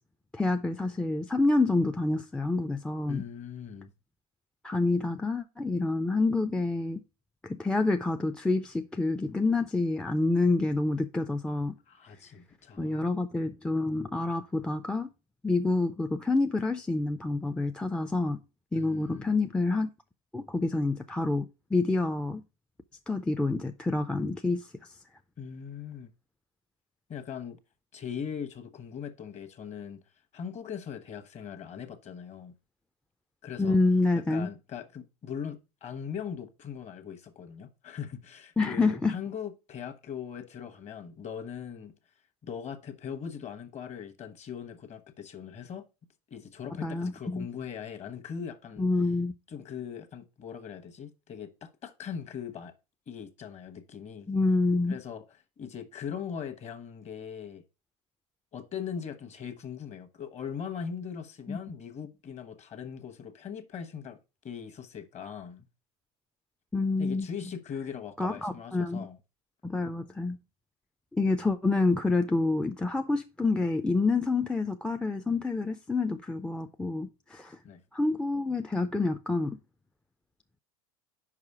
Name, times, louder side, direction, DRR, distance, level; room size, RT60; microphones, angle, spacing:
voice 1, 0.3-3.2 4.6-7.0 7.4-11.7 12.8-15.1 15.4-18.4 18.7-19.9 20.3-22.4 23.1-24.7 33.6-34.5 38.6-39.2 46.8-47.5 48.8-49.3 54.3-55.0 61.5-61.6 66.7-67.3 68.2-69.1 69.6-70.4 71.1-77.6 77.9-79.6, left 3 dB, 5° left, 0.4 m, -27 dB
voice 2, 3.1-3.9 11.9-13.1 18.7-19.3 25.4-26.1 27.1-27.6 27.9-30.0 30.3-32.5 33.4-33.8 34.3-41.9 42.4-45.8 46.3-48.9 49.5-52.7 53.1-54.3 54.9-55.2 55.6-57.6 58.5-64.2 64.4-65.7 67.0-69.2 77.6-77.8, left 7 dB, 35° left, 1.1 m, -40 dB
5.2 x 4.9 x 4.7 m
hypercardioid pair, 95°, 20 cm